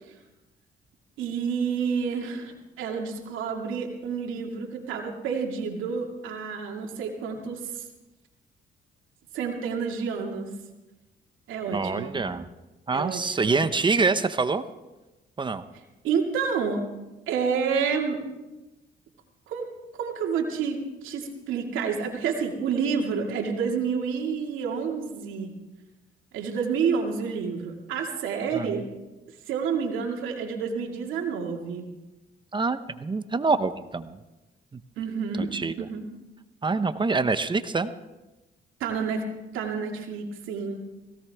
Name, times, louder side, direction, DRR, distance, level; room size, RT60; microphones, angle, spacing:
voice 1, 1.2-7.8 9.3-10.5 11.5-12.2 12.9-13.6 16.0-16.8 17.3-18.2 19.5-19.7 20.0-25.5 26.3-28.9 29.5-31.9 35.0-35.5 35.8-36.0 38.8-39.2 39.5-40.8, right 6 dB, 90° right, 1 dB, 2.3 m, -29 dB
voice 2, 11.7-12.4 12.9-14.6 15.4-15.6 28.5-28.8 32.5-34.2 34.7-34.8 35.4-35.9 36.6-37.9, right 4 dB, 25° right, 11 dB, 0.9 m, -26 dB
17.5 x 17.0 x 3.5 m, 1.1 s
cardioid pair, 90°, 20 cm